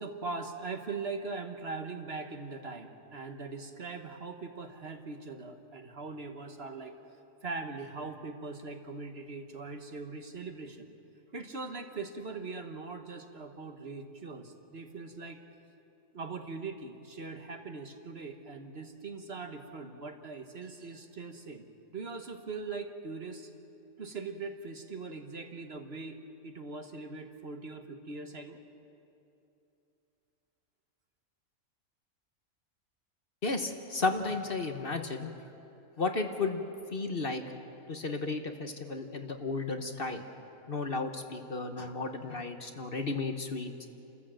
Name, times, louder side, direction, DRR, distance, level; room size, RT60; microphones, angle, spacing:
voice 1, 0.0-6.9 7.4-10.9 11.3-15.4 16.1-21.6 21.9-23.5 24.0-28.6, right 4 dB, 50° right, 5 dB, 1.5 m, -41 dB
voice 2, 33.4-35.3 36.0-36.6 36.9-37.4 37.9-40.2 40.7-43.7, left 3 dB, 45° left, 6 dB, 1.3 m, -33 dB
29.5 x 14.0 x 7.7 m, 2.8 s
omnidirectional pair, 1.4 m